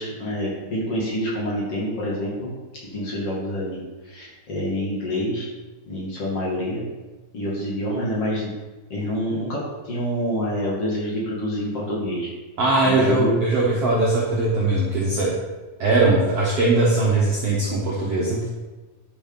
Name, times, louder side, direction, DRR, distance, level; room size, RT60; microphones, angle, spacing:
voice 1, 0.0-2.5 2.8-5.5 5.9-6.8 7.3-8.5 8.9-12.3 12.8-13.4, equal, 45° left, -5 dB, 3.0 m, -27 dB
voice 2, 12.6-15.3 15.8-18.4, right 2 dB, 55° right, -5 dB, 1.8 m, -20 dB
11.5 x 5.3 x 5.4 m, 1.2 s
omnidirectional pair, 4.3 m